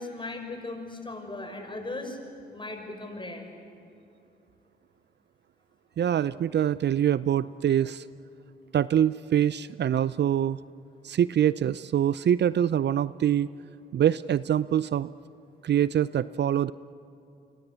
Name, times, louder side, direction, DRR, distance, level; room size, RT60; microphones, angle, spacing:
voice 1, 0.0-2.2 2.5-3.5, left 2 dB, 25° left, 4 dB, 6.2 m, -37 dB
voice 2, 6.0-8.0 8.7-10.6 11.0-13.5 13.9-15.1 15.6-16.7, right 10 dB, 55° right, 17 dB, 0.6 m, -24 dB
29.0 x 24.0 x 8.2 m, 2.6 s
supercardioid pair, 50°, 21 cm